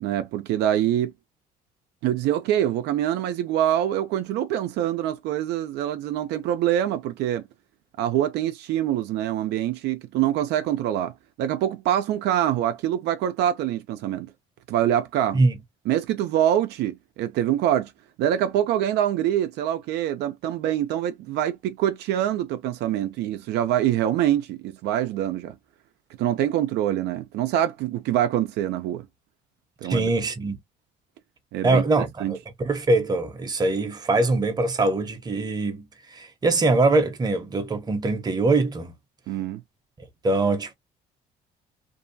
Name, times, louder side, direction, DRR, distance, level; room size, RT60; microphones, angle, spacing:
voice 1, 0.0-1.1 2.0-7.4 8.0-11.1 11.4-14.3 14.7-15.4 15.9-17.9 18.2-25.6 26.2-29.0 29.8-30.1 31.5-31.8 32.2-32.4 39.3-39.6, right 11 dB, 80° right, 0.5 m, -25 dB
voice 2, 29.9-30.6 31.6-38.9 40.2-40.7, right 2 dB, 25° right, 0.7 m, -23 dB
2.6 x 2.2 x 2.6 m
cardioid pair, 110°, 17 cm